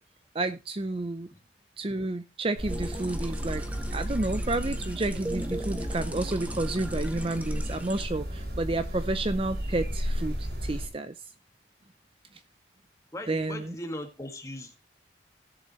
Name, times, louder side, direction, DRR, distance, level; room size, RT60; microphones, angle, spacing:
voice 1, 0.3-1.3 1.8-3.6 3.9-11.1 13.3-13.7, right 2 dB, 30° right, 0.5 m, -30 dB
sound 1, 2.6-10.9, equal, 55° right, 4.1 m, -33 dB
sound 2, 2.7-8.1, right 1 dB, 10° right, 0.9 m, -39 dB
voice 2, 13.1-14.7, left 1 dB, 15° left, 1.8 m, -38 dB
17.5 x 7.0 x 3.0 m
head